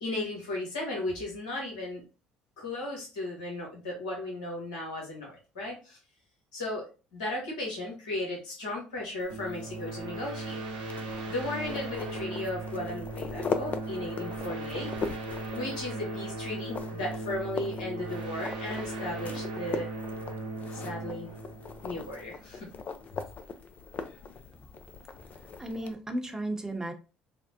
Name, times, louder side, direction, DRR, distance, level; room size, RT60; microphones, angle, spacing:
voice 1, 0.0-2.0 2.6-6.0 6.5-10.6 11.3-14.9 15.5-19.9 20.7-21.3 21.8-22.7, left 1 dB, 80° left, 1.1 m, -35 dB
sound 1, 9.2-25.9, left 5 dB, 45° left, 0.4 m, -41 dB
sound 2, 9.3-22.6, right 2 dB, 85° right, 0.6 m, -38 dB
voice 2, 25.6-26.9, right 1 dB, 15° right, 0.8 m, -34 dB
3.5 x 2.0 x 2.7 m
hypercardioid pair, 60°, 4 cm